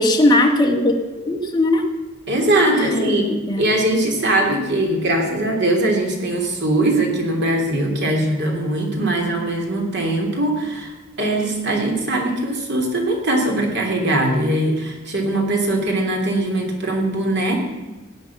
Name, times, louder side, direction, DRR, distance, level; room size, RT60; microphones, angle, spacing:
voice 1, 0.0-1.9 2.8-3.6, left 1 dB, 20° left, 1 dB, 1.7 m, -19 dB
voice 2, 2.3-3.3 3.6-17.6, right 1 dB, 55° right, 1 dB, 3.2 m, -21 dB
18.0 x 9.1 x 5.9 m, 1.2 s
head